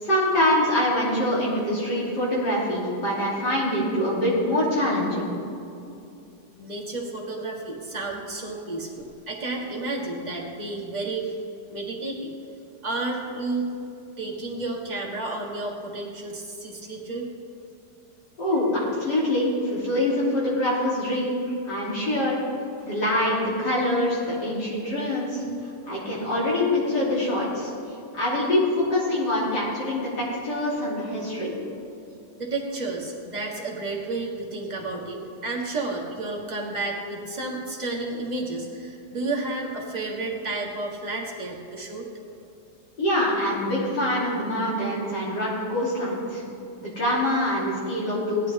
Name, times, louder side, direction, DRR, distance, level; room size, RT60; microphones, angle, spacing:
voice 1, 0.0-5.3 18.4-21.4 21.6-22.4 22.8-25.4 25.9-27.7 28.1-30.1 30.4-31.6 43.0-46.4 46.8-48.5, left 1 dB, 75° left, -6 dB, 3.7 m, -24 dB
voice 2, 6.6-11.4 11.7-12.3 12.8-13.7 14.2-17.3 22.8-22.9 32.4-42.1 46.4-46.5, right 2 dB, 25° right, -2 dB, 1.7 m, -31 dB
16.5 x 11.5 x 3.5 m, 2.7 s
omnidirectional pair, 1.8 m